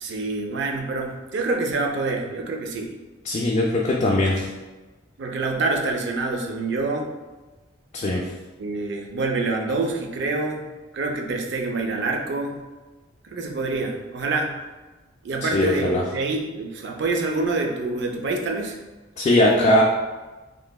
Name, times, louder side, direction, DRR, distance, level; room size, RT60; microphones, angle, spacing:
voice 1, 0.0-3.0 5.2-7.1 8.6-10.7 10.9-12.6 13.2-14.5 15.2-18.8 19.4-19.7, right 3 dB, 65° right, 2 dB, 0.4 m, -26 dB
voice 2, 3.3-4.5 7.9-8.2 15.5-16.0 19.2-19.8, left 1 dB, 35° left, -3 dB, 0.3 m, -20 dB
3.2 x 2.7 x 2.2 m, 1.2 s
head